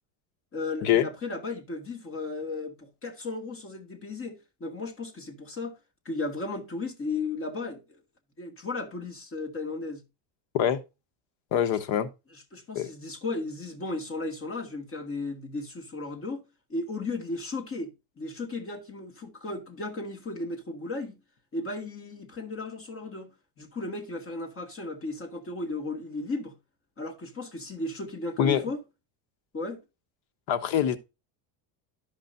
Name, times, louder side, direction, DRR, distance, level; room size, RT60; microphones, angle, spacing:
voice 1, 0.5-5.8 6.1-7.8 8.4-10.0 12.3-16.4 16.7-17.9 18.2-21.2 21.5-23.3 23.6-26.5 27.0-28.8 29.5-29.8, left 3 dB, 25° left, 2.0 m, -35 dB
voice 2, 11.5-12.1 12.7-12.9 28.4-28.7 30.5-31.0, left 10 dB, 65° left, 1.2 m, -24 dB
13.0 x 5.2 x 2.7 m
cardioid pair, 135°, 50 cm